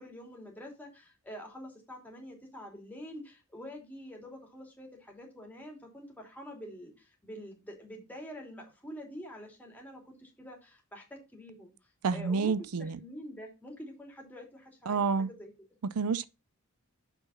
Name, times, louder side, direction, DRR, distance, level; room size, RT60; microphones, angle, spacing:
voice 1, 0.0-11.7 12.1-12.5 12.8-15.5, equal, 10° left, 2.9 m, -46 dB
voice 2, 12.0-13.0 14.9-15.3 15.8-16.2, right 5 dB, 90° right, 0.5 m, -29 dB
6.9 x 6.0 x 5.6 m
head